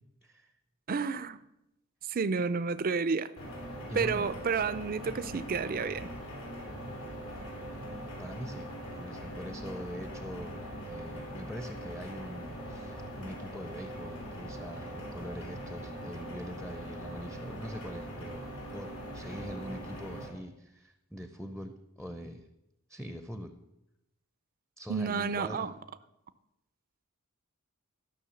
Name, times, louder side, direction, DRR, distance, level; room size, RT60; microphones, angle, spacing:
voice 1, 0.2-0.5 3.9-4.3 8.2-22.5 22.9-23.5 24.8-25.7, equal, ahead, 0.6 m, -43 dB
voice 2, 0.9-1.4 2.1-3.3 3.9-6.1 24.9-25.7, right 5 dB, 40° right, 0.5 m, -30 dB
sound 1, 3.4-20.3, equal, 80° left, 3.6 m, -41 dB
13.0 x 6.3 x 7.0 m
head